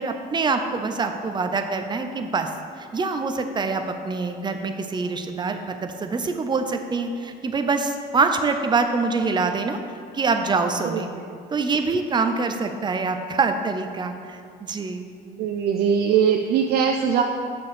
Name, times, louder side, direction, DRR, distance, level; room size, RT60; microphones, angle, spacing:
voice 1, 0.0-2.5 2.8-9.8 10.1-11.1 11.5-15.1, right 4 dB, 25° right, 6 dB, 0.7 m, -25 dB
voice 2, 10.9-11.2 15.3-17.2, right 7 dB, 70° right, 3 dB, 0.5 m, -21 dB
6.7 x 5.2 x 6.9 m, 2.3 s
cardioid pair, 110°, 17 cm